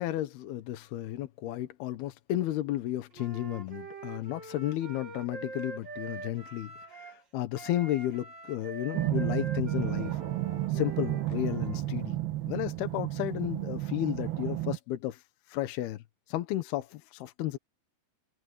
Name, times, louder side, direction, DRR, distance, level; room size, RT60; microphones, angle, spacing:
voice 1, 0.0-10.2 10.7-12.2 12.4-15.2 15.5-16.0 16.3-17.6, left 14 dB, 80° left, 3.0 m, -33 dB
Wind instrument woodwind instrument, 3.1-7.2 7.5-11.8, right 3 dB, 30° right, 2.8 m, -44 dB
sound 1, 8.9-14.8, right 15 dB, 75° right, 3.4 m, -32 dB
omnidirectional pair, 4.5 m